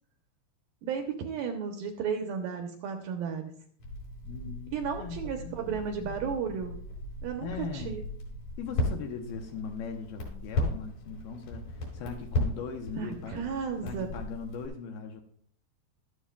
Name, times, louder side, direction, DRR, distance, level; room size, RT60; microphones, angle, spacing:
voice 1, 0.8-3.5 4.7-6.8 7.2-8.0 12.9-14.1, right 6 dB, 75° right, 4 dB, 2.3 m, -34 dB
Crackle, 3.8-14.7, left 1 dB, 50° left, 4.9 m, -36 dB
voice 2, 4.2-6.2 7.4-8.0 8.6-13.5 13.8-15.2, left 5 dB, 75° left, 4 dB, 2.4 m, -40 dB
14.5 x 12.5 x 2.3 m, 0.62 s
omnidirectional pair, 4.9 m